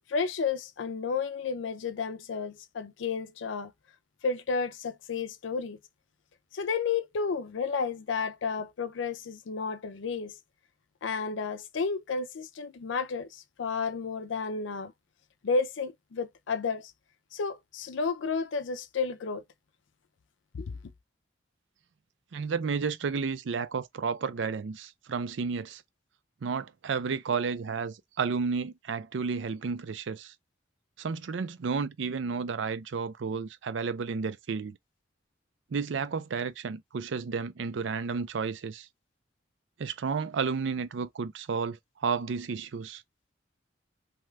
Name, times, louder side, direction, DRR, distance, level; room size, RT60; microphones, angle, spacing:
voice 1, 0.0-3.7 4.2-5.8 6.5-10.4 11.0-14.9 15.4-16.9 17.3-19.4 20.5-20.8, left 5 dB, 85° left, 0.5 m, -32 dB
voice 2, 22.3-25.8 26.4-30.3 31.0-34.8 35.7-38.9 39.8-43.0, right 5 dB, 80° right, 0.4 m, -32 dB
2.8 x 2.3 x 3.2 m
head